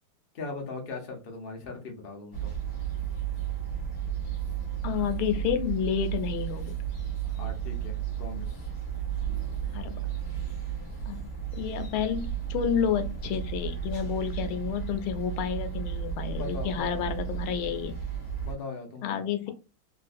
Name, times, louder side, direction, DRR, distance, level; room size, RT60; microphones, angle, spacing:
voice 1, 0.3-2.5 7.2-8.6 16.2-17.1 18.4-19.5, left 3 dB, 65° left, 2 dB, 0.5 m, -40 dB
sound 1, 2.3-18.5, right 9 dB, 35° left, 0.9 m, -33 dB
voice 2, 4.8-6.8 9.7-10.0 11.1-11.2 11.6-18.0 19.0-19.5, left 8 dB, 90° left, 8 dB, 1.5 m, -30 dB
3.7 x 2.5 x 2.5 m, 0.30 s
omnidirectional pair, 2.3 m